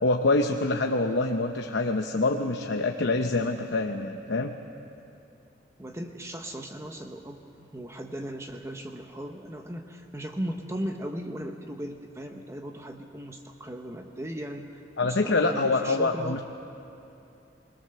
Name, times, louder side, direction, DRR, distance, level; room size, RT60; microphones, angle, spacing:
voice 1, 0.0-4.5 15.0-16.4, left 2 dB, 70° left, 3 dB, 0.9 m, -25 dB
voice 2, 5.8-16.4, equal, 15° right, 4 dB, 0.9 m, -37 dB
21.0 x 21.0 x 6.9 m, 2.8 s
head